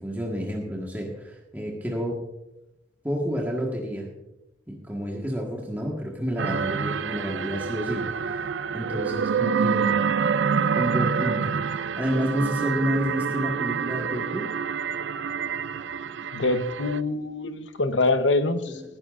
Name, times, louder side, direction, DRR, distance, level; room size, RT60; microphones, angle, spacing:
voice 1, 0.0-2.3 3.0-4.1 4.7-8.4 8.7-9.9 10.7-14.5 18.7-18.8, equal, 10° right, -2 dB, 1.6 m, -30 dB
sound 1, 6.4-17.0, right 6 dB, 75° right, 0.5 m, -27 dB
voice 2, 16.3-18.8, left 2 dB, 75° left, 9 dB, 1.0 m, -24 dB
20.5 x 11.5 x 2.6 m, 0.91 s
head